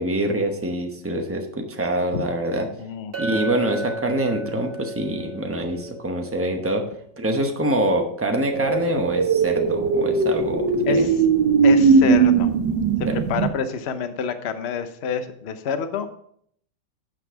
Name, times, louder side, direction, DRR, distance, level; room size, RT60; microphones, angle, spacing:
voice 1, 0.0-2.7 3.2-6.8 7.2-11.1 13.1-13.2, right 1 dB, 20° right, 3 dB, 0.4 m, -25 dB
voice 2, 2.8-3.5 10.8-11.1 11.6-12.5 13.1-16.1, left 6 dB, 55° left, 9 dB, 0.7 m, -28 dB
Chink clink, 3.1-7.4, right 2 dB, 35° right, 1.2 m, -34 dB
sound 1, 8.5-13.5, right 5 dB, 70° right, 1.6 m, -19 dB
9.1 x 6.1 x 4.7 m, 0.65 s
omnidirectional pair, 2.1 m